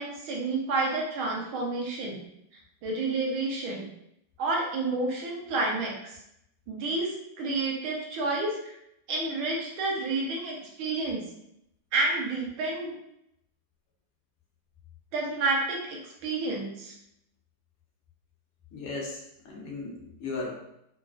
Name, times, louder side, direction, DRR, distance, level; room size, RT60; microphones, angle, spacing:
voice 1, 0.0-2.2 2.8-3.9 4.4-6.1 6.7-8.8 9.1-11.2 11.9-13.0 15.1-16.9, right 3 dB, 75° right, -1 dB, 1.5 m, -30 dB
voice 2, 18.7-20.5, left 3 dB, 90° left, -2 dB, 1.8 m, -36 dB
4.9 x 2.4 x 2.3 m, 0.78 s
omnidirectional pair, 2.4 m